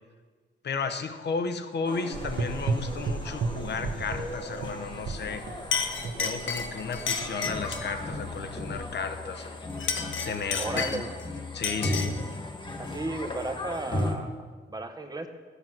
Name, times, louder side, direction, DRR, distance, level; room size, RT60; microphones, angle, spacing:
voice 1, 0.6-5.4 6.2-9.6 10.2-11.0 11.5-12.1, left 5 dB, 65° left, 8 dB, 1.0 m, -33 dB
sound 1, 1.8-14.1, left 1 dB, 25° left, 1.5 m, -36 dB
Gurgling / Engine, 2.1-8.8, right 4 dB, 70° right, 1.1 m, -35 dB
Chink clink, 5.2-5.4 5.7-7.9 9.7-11.2 11.6-12.2, left 5 dB, 90° left, 1.2 m, -32 dB
voice 2, 10.6-11.1 12.8-15.3, right 2 dB, 20° right, 7 dB, 0.9 m, -35 dB
14.5 x 8.2 x 6.0 m, 1.5 s
wide cardioid pair, 170°, 19 cm